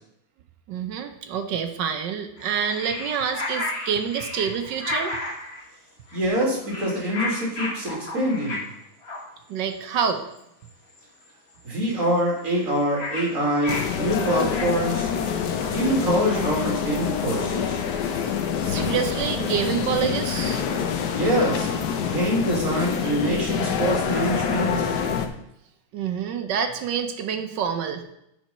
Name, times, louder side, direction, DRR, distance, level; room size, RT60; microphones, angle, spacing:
voice 1, 0.7-5.2 9.5-10.3 18.6-20.6 25.9-28.0, right 7 dB, 65° right, 6 dB, 1.2 m, -27 dB
sound 1, 2.4-5.6 6.1-6.3 6.6-8.7 9.0-9.2 9.8-9.9 10.1-10.4 10.7-11.0 11.3-11.4 11.5-11.6 11.8-18.6, left 2 dB, 35° left, 1.4 m, -34 dB
voice 2, 6.1-8.6 11.6-15.1 15.7-17.8 21.2-21.7 22.1-24.9, equal, 35° right, -3 dB, 2.5 m, -24 dB
sound 2, 13.7-25.3, left 7 dB, 65° left, 1.1 m, -26 dB
7.5 x 5.1 x 5.5 m, 0.80 s
omnidirectional pair, 2.4 m